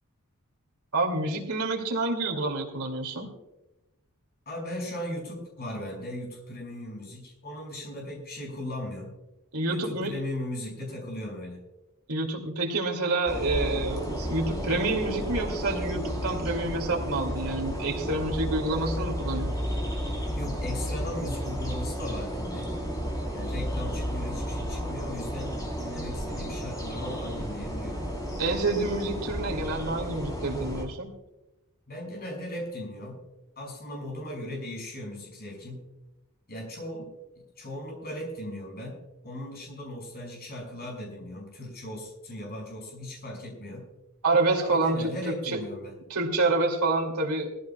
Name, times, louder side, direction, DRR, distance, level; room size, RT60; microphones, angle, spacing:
voice 1, 0.9-3.3 9.5-10.2 12.1-19.5 28.4-31.1 44.2-45.6 46.1-47.5, right 2 dB, 80° right, 2 dB, 2.6 m, -28 dB
voice 2, 4.5-9.1 9.7-11.6 20.3-22.7 23.3-28.0 31.9-33.2 33.6-35.9 36.5-43.9 44.6-45.9, left 1 dB, 45° left, -1 dB, 5.8 m, -38 dB
sound 1, 13.3-30.8, equal, 15° left, 3.7 m, -32 dB
20.5 x 15.0 x 2.3 m, 0.98 s
head